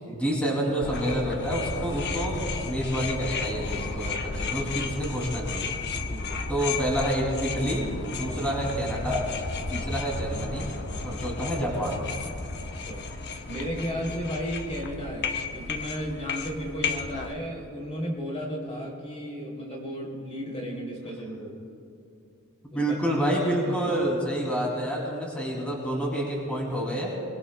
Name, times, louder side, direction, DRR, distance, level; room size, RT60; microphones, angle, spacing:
voice 1, 0.1-5.8 6.5-9.3 9.7-12.1 22.6-27.2, equal, 5° left, -3 dB, 2.6 m, -28 dB
sound 1, 0.8-17.3, left 4 dB, 50° left, 0.8 m, -33 dB
voice 2, 6.1-6.4 8.2-8.4 9.7-9.9 11.0-11.2 12.5-13.0 13.5-21.5 22.7-23.0 23.6-23.9, equal, 30° left, -2 dB, 2.9 m, -34 dB
23.0 x 21.5 x 2.2 m, 2.5 s
head